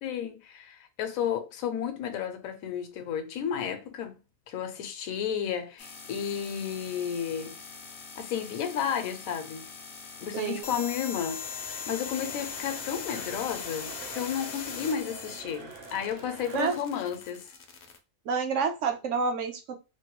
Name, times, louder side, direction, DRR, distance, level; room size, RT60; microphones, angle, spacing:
voice 1, 0.0-4.2 4.5-7.6 8.2-9.7 10.2-17.5, left 8 dB, 75° left, 1.0 m, -32 dB
sound 1, 5.8-18.0, left 6 dB, 60° left, 0.6 m, -41 dB
voice 2, 10.3-10.7 16.5-16.7 18.3-19.7, right 5 dB, 65° right, 0.9 m, -28 dB
sound 2, 10.6-16.8, right 3 dB, 85° right, 1.4 m, -47 dB
3.2 x 2.2 x 2.9 m
omnidirectional pair, 1.5 m